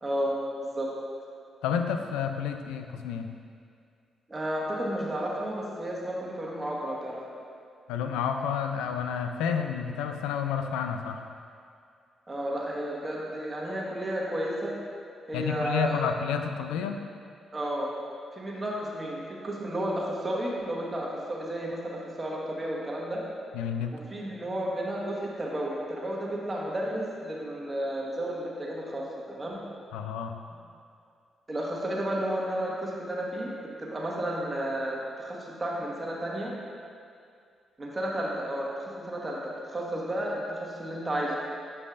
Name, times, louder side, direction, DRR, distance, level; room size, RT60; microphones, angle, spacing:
voice 1, 0.0-0.9 4.3-7.2 12.3-14.7 15.3-16.0 17.5-17.9 18.3-23.2 23.9-29.6 31.5-33.5 33.8-36.5 37.8-41.4, right 1 dB, 30° right, -3 dB, 1.2 m, -32 dB
voice 2, 1.6-3.3 7.9-11.2 15.3-17.0 23.5-24.0 29.9-30.3, left 7 dB, 80° left, 6 dB, 0.3 m, -30 dB
8.0 x 5.4 x 2.5 m, 2.3 s
hypercardioid pair, 45°, 0 cm